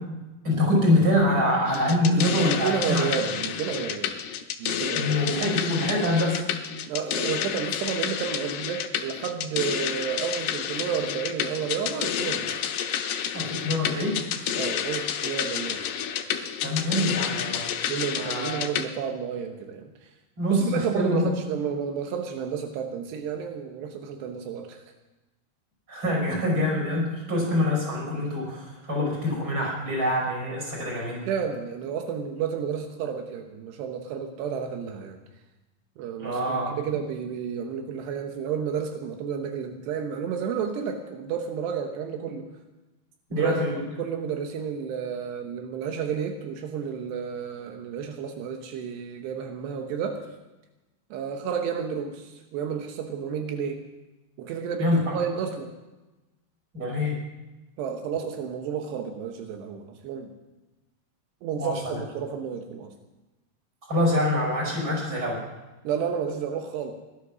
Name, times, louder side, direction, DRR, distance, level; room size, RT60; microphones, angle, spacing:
voice 1, 0.4-3.1 4.9-6.4 13.3-14.2 16.6-17.7 18.1-18.6 20.4-21.3 25.9-31.2 36.2-36.7 43.3-43.8 54.8-55.0 56.7-57.1 61.6-62.0 63.9-65.4, left 1 dB, 25° right, -2 dB, 6.2 m, -25 dB
sound 1, 1.7-18.9, left 9 dB, 80° left, 3.0 m, -30 dB
voice 2, 2.2-4.2 4.6-5.2 6.9-12.6 14.5-15.9 17.9-20.1 20.5-24.8 31.3-35.2 36.0-42.5 43.3-43.6 44.0-50.3 51.1-53.8 54.4-55.7 57.8-60.3 61.4-62.9 65.8-66.9, right 7 dB, 85° right, 4 dB, 3.2 m, -31 dB
19.0 x 12.0 x 6.2 m, 1.1 s
omnidirectional pair, 4.8 m